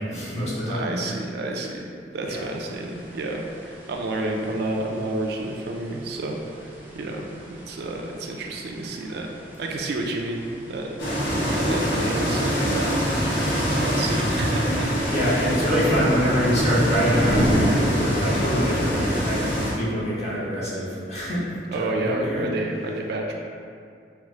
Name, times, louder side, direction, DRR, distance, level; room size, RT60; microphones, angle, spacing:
voice 1, 0.0-1.0 2.2-2.4 15.1-22.5, equal, 40° left, -8 dB, 0.8 m, -25 dB
voice 2, 0.7-1.9 2.1-9.3 9.6-10.4 10.7-13.3 13.6-14.9 15.2-15.3 21.7-23.4, right 2 dB, 65° right, 1 dB, 0.4 m, -30 dB
sound 1, 2.2-17.6, equal, 10° right, 0.5 m, -36 dB
sound 2, 11.0-19.7, equal, 90° left, 0.8 m, -24 dB
3.3 x 2.0 x 3.1 m, 2.3 s
head